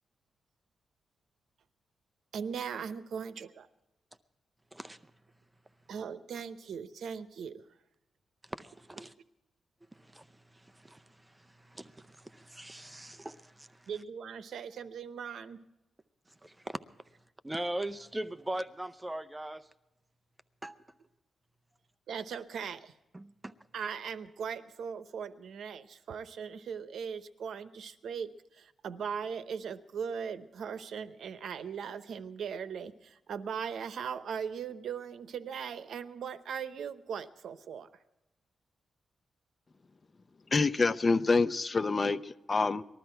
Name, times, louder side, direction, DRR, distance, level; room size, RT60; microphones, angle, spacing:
voice 1, 2.3-3.7 5.9-7.6 13.9-15.6 22.1-22.9 23.7-37.9, right 7 dB, 80° right, 11 dB, 0.9 m, -39 dB
voice 2, 8.5-9.1 9.9-13.9 16.4-16.8 17.4-19.7 20.6-20.8 23.1-23.5, right 1 dB, 10° right, 11 dB, 0.6 m, -40 dB
voice 3, 40.5-42.8, left 3 dB, 30° left, 11 dB, 0.6 m, -27 dB
20.0 x 13.0 x 4.5 m, 0.96 s
wide cardioid pair, 135°, 0 cm